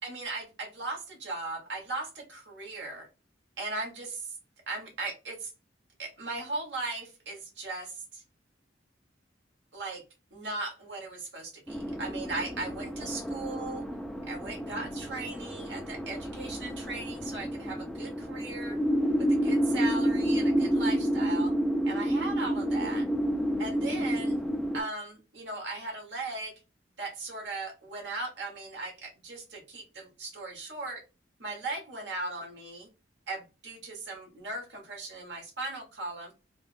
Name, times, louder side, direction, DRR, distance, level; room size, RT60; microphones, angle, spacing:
voice 1, 0.0-3.1 3.6-4.4 4.7-5.5 6.0-8.2 9.7-10.0 10.3-13.8 14.3-18.8 19.2-21.5 21.8-23.1 23.6-24.4 24.7-26.5 27.0-31.0 31.4-32.9 33.3-36.3, right 3 dB, 70° right, 0 dB, 1.3 m, -38 dB
sound 1, 11.7-24.8, equal, ahead, 0.3 m, -29 dB
3.3 x 2.2 x 2.5 m, 0.29 s
head